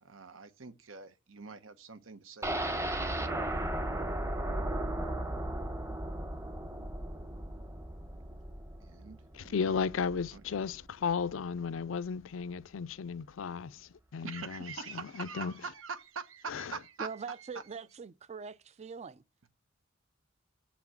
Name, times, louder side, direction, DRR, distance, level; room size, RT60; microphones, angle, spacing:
voice 1, 0.0-2.7 8.8-9.8 10.3-10.4 14.2-17.5 19.4-19.5, right 5 dB, 80° right, 1.1 m, -44 dB
sound 1, 2.4-10.3 10.6-10.7 11.1-11.2, right 1 dB, 15° right, 0.9 m, -36 dB
voice 2, 9.3-15.5 16.5-16.7, left 6 dB, 70° left, 0.4 m, -35 dB
voice 3, 17.0-19.2, right 5 dB, 35° right, 0.4 m, -42 dB
7.2 x 6.0 x 7.2 m
head